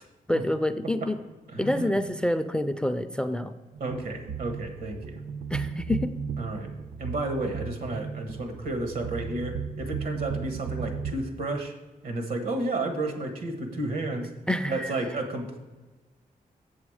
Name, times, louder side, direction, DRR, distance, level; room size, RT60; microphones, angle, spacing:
voice 1, 0.3-1.2 1.6-3.5 5.5-6.1 14.5-15.0, left 1 dB, 5° left, 11 dB, 0.3 m, -27 dB
voice 2, 1.5-1.9 3.8-5.2 6.4-6.7 7.0-11.7 12.0-14.3 14.7-15.6, right 2 dB, 85° right, 5 dB, 1.4 m, -32 dB
sound 1, 3.7-11.1, right 6 dB, 55° right, 0.5 m, -35 dB
7.1 x 7.1 x 4.8 m, 1.2 s
wide cardioid pair, 130°, 15 cm